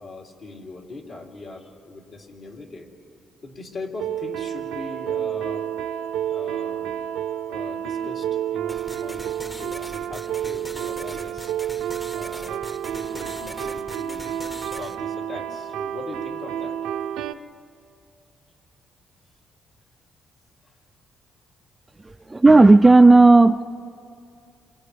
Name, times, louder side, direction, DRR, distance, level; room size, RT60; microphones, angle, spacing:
voice 1, 0.0-2.9 3.4-5.7 6.3-6.9 7.5-11.5 12.1-14.3 14.6-16.8, left 3 dB, 55° left, 0 dB, 3.1 m, -40 dB
sound 1, 4.0-17.3, right 10 dB, 90° right, 0.6 m, -30 dB
sound 2, 8.7-15.0, left 1 dB, 15° left, 0.9 m, -41 dB
voice 2, 22.0-23.6, right 2 dB, 15° right, 11 dB, 0.4 m, -12 dB
29.5 x 26.0 x 3.4 m, 2.4 s
cardioid pair, 90°, 0 cm